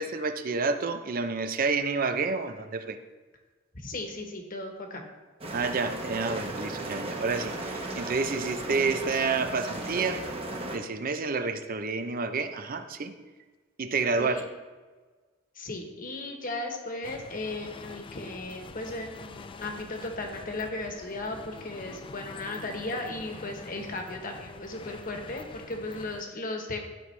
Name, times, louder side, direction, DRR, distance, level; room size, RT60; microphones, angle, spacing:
voice 1, 0.0-3.0 5.5-10.2 10.7-13.1 13.8-14.4, right 4 dB, 45° right, 9 dB, 0.6 m, -29 dB
voice 2, 3.7-5.0 14.2-14.4 15.5-26.9, left 2 dB, 45° left, 3 dB, 1.2 m, -36 dB
sound 1, 5.4-10.8, right 2 dB, 30° right, 1.1 m, -36 dB
sound 2, 17.0-26.2, left 4 dB, 25° left, 0.3 m, -45 dB
13.0 x 5.3 x 3.3 m, 1.4 s
head